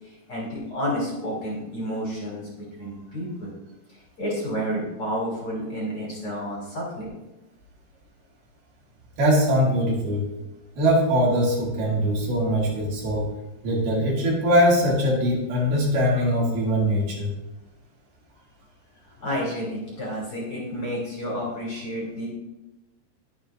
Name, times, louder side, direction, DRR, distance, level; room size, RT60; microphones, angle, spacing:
voice 1, 0.0-2.5 2.8-3.5 3.9-7.1 19.2-22.3, equal, 35° left, -6 dB, 3.3 m, -30 dB
voice 2, 9.2-10.2 10.8-13.3 13.6-17.3, equal, 65° right, -4 dB, 3.7 m, -22 dB
21.0 x 7.1 x 2.6 m, 0.99 s
omnidirectional pair, 5.2 m